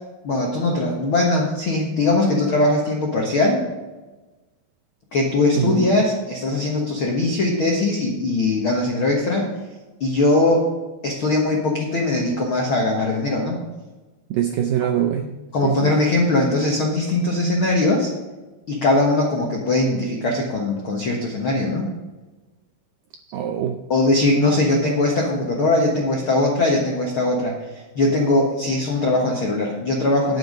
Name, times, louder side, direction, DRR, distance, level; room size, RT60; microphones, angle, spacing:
voice 1, 0.2-3.7 5.1-9.6 10.0-10.7 11.0-13.6 15.5-18.1 18.7-21.9 23.9-30.4, left 2 dB, 70° left, -1 dB, 1.2 m, -20 dB
voice 2, 5.6-5.9 14.3-15.3 15.6-16.0 23.3-23.8, right 10 dB, 80° right, 5 dB, 1.9 m, -23 dB
10.0 x 9.3 x 5.3 m, 1.2 s
omnidirectional pair, 4.7 m